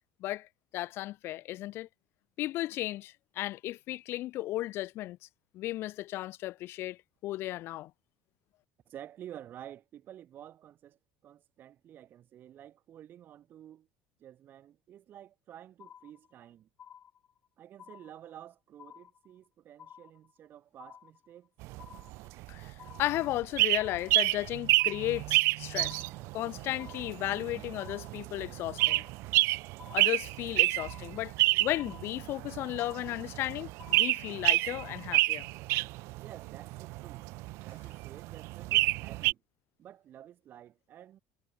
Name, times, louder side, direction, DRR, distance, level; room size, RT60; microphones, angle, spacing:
voice 1, 0.7-1.9 2.4-5.2 5.5-7.0 7.2-7.9 22.5-26.0 26.3-29.0 29.9-35.5, left 16 dB, 55° left, 0.6 m, -35 dB
voice 2, 8.9-13.9 14.2-16.7 17.6-21.5 36.2-37.3 37.6-39.4 39.8-41.2, right 11 dB, 45° right, 3.9 m, -51 dB
sound 1, 15.8-16.5 16.8-17.5 17.8-18.5 18.8-19.5 19.8-20.5 20.8-21.5 21.8-22.5 22.8-23.5 23.8-24.5 24.8-25.5 25.8-26.5 26.8-27.5 27.8-28.5 28.8-29.5 29.8-30.5 30.8-31.5 31.8-32.5 32.8-33.5 33.8-34.5 34.8-35.5, left 8 dB, 35° left, 7.2 m, -53 dB
sound 2, 21.6-39.3, right 21 dB, 65° right, 0.4 m, -30 dB
supercardioid pair, 120°, 5 cm